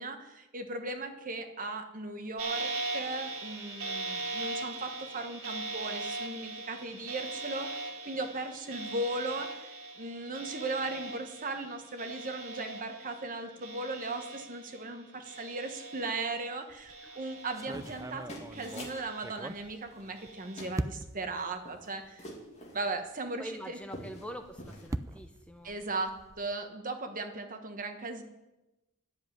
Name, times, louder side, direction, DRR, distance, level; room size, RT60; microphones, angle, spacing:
voice 1, 0.0-22.3 22.7-23.8 25.6-28.2, right 2 dB, 40° right, 6 dB, 1.3 m, -37 dB
Biohazard Alarm, 2.4-15.0 15.2-16.5 16.9-18.1 18.5-19.6 20.2-20.7, right 3 dB, 70° right, 2.1 m, -40 dB
sound 1, 16.7-17.0 17.5-20.3 20.8-21.3 22.0-22.1 22.5-22.6 24.2-26.5, right 2 dB, 15° right, 0.3 m, -40 dB
sound 2, 17.4-19.0 19.9-20.3 20.6-20.8 21.2-22.9 23.4-23.5 23.8-24.3 24.6-24.9, left 1 dB, 30° left, 2.7 m, -46 dB
voice 2, 23.4-25.7, equal, 5° left, 6 dB, 0.7 m, -45 dB
11.0 x 7.3 x 9.4 m, 1.0 s
head